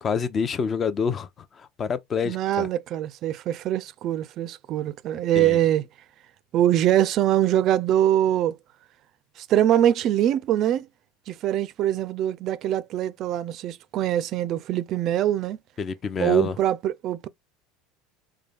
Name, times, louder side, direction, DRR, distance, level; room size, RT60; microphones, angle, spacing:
voice 1, 0.0-2.7 5.4-5.6 15.8-16.5, left 6 dB, 35° left, 0.6 m, -27 dB
voice 2, 2.2-5.8 6.5-8.6 9.4-10.9 11.3-15.6 16.2-17.3, right 11 dB, 50° right, 0.4 m, -23 dB
3.7 x 2.2 x 3.4 m
supercardioid pair, 105°, 0 cm